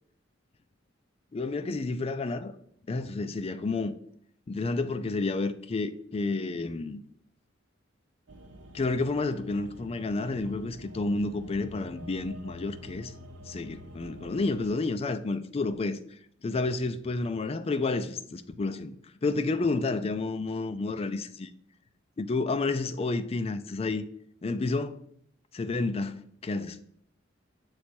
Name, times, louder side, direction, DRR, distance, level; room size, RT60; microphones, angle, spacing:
voice 1, 1.3-2.5 2.9-4.0 4.5-7.0 8.7-13.1 13.5-16.0 16.4-18.9 19.2-21.5 22.2-24.0 24.4-25.0 25.5-26.8, left 3 dB, 30° left, 0.4 m, -30 dB
sound 1, 8.3-14.7, equal, 70° right, 0.8 m, -47 dB
6.9 x 3.2 x 4.3 m
head